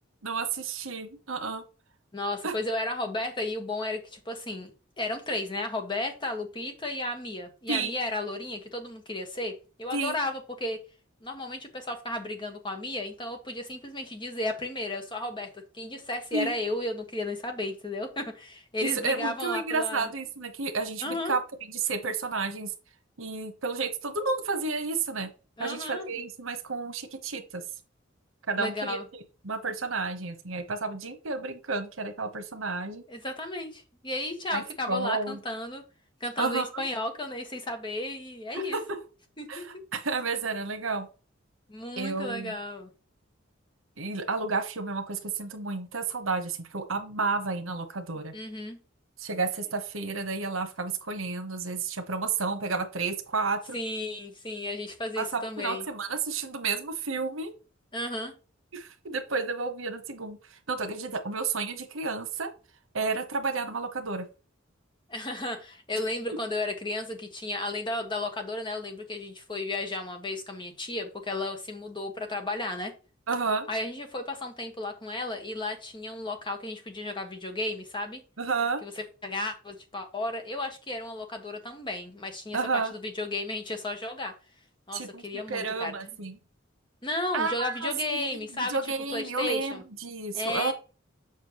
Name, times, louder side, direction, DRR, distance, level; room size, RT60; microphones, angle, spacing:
voice 1, 0.2-1.6 2.4-2.5 7.7-8.0 9.9-10.2 16.3-16.5 18.8-21.4 21.7-22.7 23.2-25.3 25.6-27.6 28.5-33.0 34.5-35.4 36.4-36.8 38.5-39.0 39.5-41.1 42.0-42.5 44.0-48.3 49.2-53.8 55.2-57.5 58.7-60.4 60.7-62.5 62.9-64.3 73.3-73.7 78.4-78.8 82.5-82.9 84.9-86.4 87.3-90.7, right 4 dB, 90° right, 1.1 m, -31 dB
voice 2, 2.1-4.7 5.0-10.8 11.2-20.1 21.0-21.3 25.6-26.1 28.6-29.0 33.1-35.8 36.2-38.8 39.4-39.8 41.7-42.9 48.3-48.8 53.7-55.9 57.9-58.3 65.1-72.9 73.7-78.2 78.8-84.3 84.9-86.1 87.0-88.8 89.1-89.8 90.3-90.7, left 2 dB, 25° left, 1.5 m, -34 dB
7.3 x 5.5 x 3.0 m
head